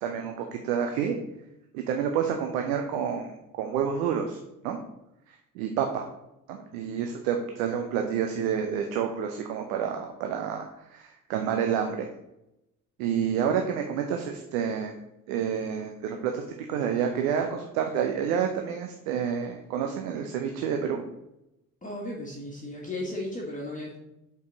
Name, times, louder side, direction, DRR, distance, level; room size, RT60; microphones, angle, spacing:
voice 1, 0.0-1.2 1.7-4.4 4.6-4.8 5.5-6.0 6.5-12.1 13.0-14.9 15.3-16.4 16.7-21.0, right 8 dB, 60° right, 4 dB, 0.9 m, -29 dB
voice 2, 21.8-24.0, left 1 dB, 15° left, -2 dB, 1.5 m, -35 dB
6.8 x 5.4 x 3.9 m, 0.87 s
figure-of-eight pair, 50°, 46 cm